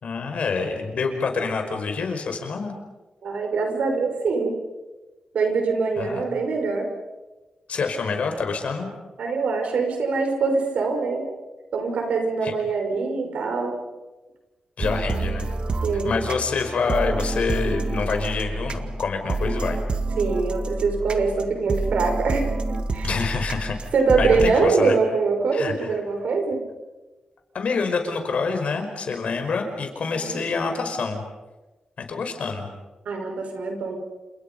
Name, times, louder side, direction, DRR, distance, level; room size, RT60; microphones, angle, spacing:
voice 1, 0.0-2.7 6.0-6.2 7.7-8.9 12.4-12.5 14.8-15.5 16.0-19.8 23.0-23.8 24.2-25.0 25.5-25.7 27.5-31.2 32.1-32.7, left 4 dB, 70° left, 5 dB, 5.2 m, -26 dB
voice 2, 3.2-4.6 5.3-6.9 9.2-11.2 11.7-13.7 15.8-16.2 20.2-23.1 23.9-26.6 30.2-30.4 33.1-34.0, right 4 dB, 85° right, 4 dB, 5.6 m, -23 dB
sound 1, 14.8-24.5, right 2 dB, 50° right, 1.9 m, -28 dB
30.0 x 28.5 x 5.5 m, 1.2 s
cardioid pair, 80°, 2 cm